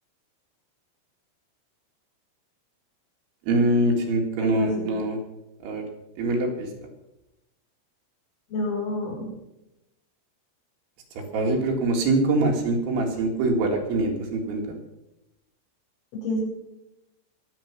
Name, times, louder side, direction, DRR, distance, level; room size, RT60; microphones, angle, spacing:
voice 1, 3.5-5.2 5.6-5.8 6.2-6.7 11.2-14.8, right 2 dB, 70° right, 1 dB, 4.3 m, -24 dB
voice 2, 4.4-4.9 8.5-9.3 16.1-16.4, left 1 dB, 70° left, -4 dB, 7.7 m, -29 dB
22.0 x 7.6 x 5.9 m, 0.92 s
omnidirectional pair, 5.8 m